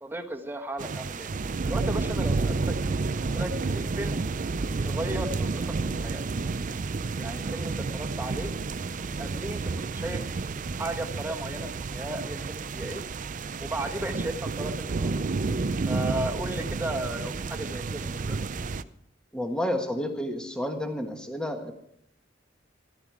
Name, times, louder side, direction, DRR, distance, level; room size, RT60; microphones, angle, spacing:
voice 1, 0.0-1.3 1.6-2.7 3.2-4.3 4.7-6.2 7.2-8.5 9.2-9.6 9.9-10.2 10.8-13.0 13.6-15.1 15.8-18.4, right 1 dB, 10° right, 3 dB, 1.4 m, -35 dB
sound 1, 0.8-18.8, right 3 dB, 45° right, 0.5 m, -30 dB
voice 2, 19.3-21.7, left 1 dB, 5° left, 4 dB, 1.4 m, -30 dB
14.5 x 12.0 x 4.8 m, 0.76 s
head